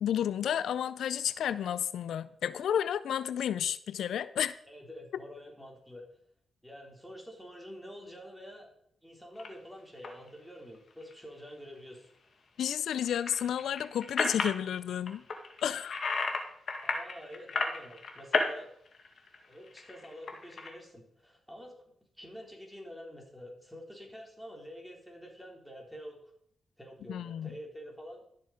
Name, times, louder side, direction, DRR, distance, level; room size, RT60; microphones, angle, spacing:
voice 1, 0.0-4.5 12.6-15.2 15.6-16.0 27.1-27.5, left 9 dB, 85° left, 16 dB, 0.4 m, -31 dB
voice 2, 4.7-6.0 6.6-8.7 9.0-12.1 16.8-18.7 19.5-21.7 22.2-26.3 26.8-28.2, equal, ahead, 0 dB, 3.8 m, -47 dB
sound 1, 9.4-9.5 10.0-10.3 10.7-11.1 13.0-14.6 15.1-16.4 16.7-18.5 18.9-20.7, left 4 dB, 60° left, 1.9 m, -33 dB
12.5 x 6.7 x 5.1 m, 0.67 s
cardioid pair, 65°, 0 cm